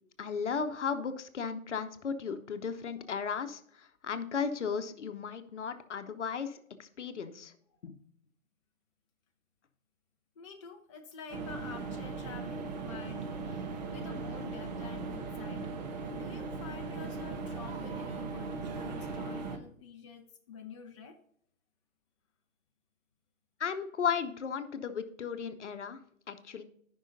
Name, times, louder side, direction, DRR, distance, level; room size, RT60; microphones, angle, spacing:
voice 1, 0.2-3.6 4.0-6.6 7.0-7.5 7.8-7.9 23.6-26.0 26.3-26.6, left 6 dB, 60° left, 10 dB, 0.9 m, -35 dB
voice 2, 10.4-15.7 16.1-21.2, left 5 dB, 25° left, 3 dB, 0.5 m, -49 dB
sound 1, 11.3-19.6, right 4 dB, 35° right, 0.8 m, -38 dB
13.5 x 5.6 x 2.6 m, 0.64 s
figure-of-eight pair, 120°, 41 cm